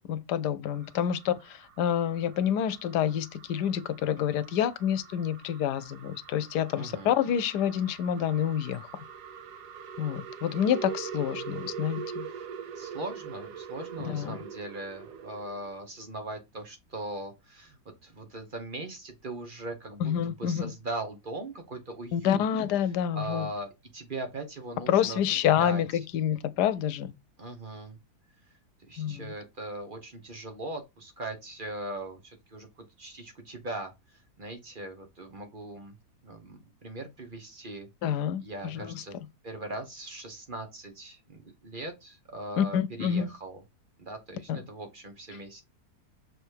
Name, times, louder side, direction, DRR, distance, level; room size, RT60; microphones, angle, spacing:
voice 1, 0.1-8.9 10.0-12.3 14.0-14.4 20.0-20.7 22.1-23.5 24.9-27.1 29.0-29.3 38.0-38.9 42.6-43.3 44.5-44.6, left 9 dB, 85° left, 1.2 m, -28 dB
sound 1, 0.6-15.8, right 7 dB, 80° right, 1.4 m, -43 dB
voice 2, 6.7-7.1 12.2-12.5 12.7-22.4 23.1-25.2 25.6-26.0 27.4-28.0 28.9-36.0 36.2-37.9 38.4-39.2 39.4-43.6 44.0-45.6, right 2 dB, 35° right, 1.0 m, -40 dB
6.5 x 3.4 x 4.6 m
omnidirectional pair, 1.7 m